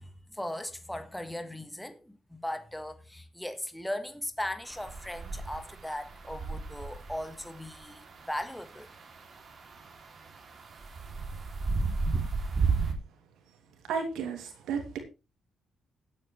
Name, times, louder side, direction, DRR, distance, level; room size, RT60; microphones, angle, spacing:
voice 1, 0.0-8.9, left 1 dB, 5° left, 1.5 m, -38 dB
sound 1, 4.6-12.9, right 4 dB, 45° right, 3.0 m, -34 dB
voice 2, 13.9-15.0, right 6 dB, 85° right, 2.8 m, -33 dB
16.5 x 9.0 x 3.3 m
cardioid pair, 90°, 0 cm